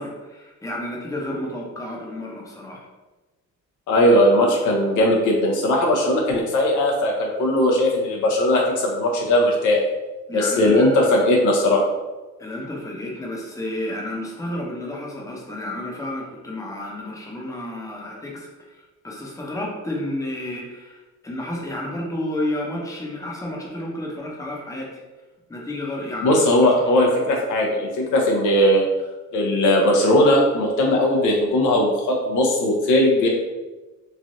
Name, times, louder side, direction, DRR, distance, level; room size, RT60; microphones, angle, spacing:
voice 1, 0.0-2.8 10.3-11.1 12.4-25.0 25.5-26.5, left 1 dB, 10° left, -2 dB, 0.7 m, -31 dB
voice 2, 3.9-9.8 10.3-11.8 26.2-28.9 29.3-33.3, left 1 dB, 80° left, -1 dB, 0.7 m, -18 dB
3.2 x 2.4 x 2.6 m, 1.1 s
cardioid pair, 90°, 30 cm